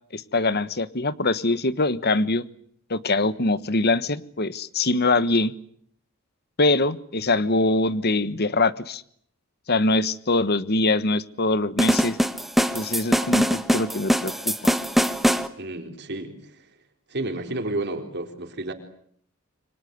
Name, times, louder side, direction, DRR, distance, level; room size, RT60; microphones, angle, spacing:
voice 1, 0.1-2.4 2.9-5.5 6.6-9.0 9.7-12.2 12.7-13.4 13.7-14.7, left 2 dB, 45° left, 15 dB, 1.3 m, -23 dB
sound 1, 11.8-15.5, equal, ahead, 1.4 m, -22 dB
voice 2, 15.6-16.7 17.1-18.7, right 2 dB, 50° right, 5 dB, 3.9 m, -31 dB
27.5 x 25.5 x 8.1 m, 0.66 s
head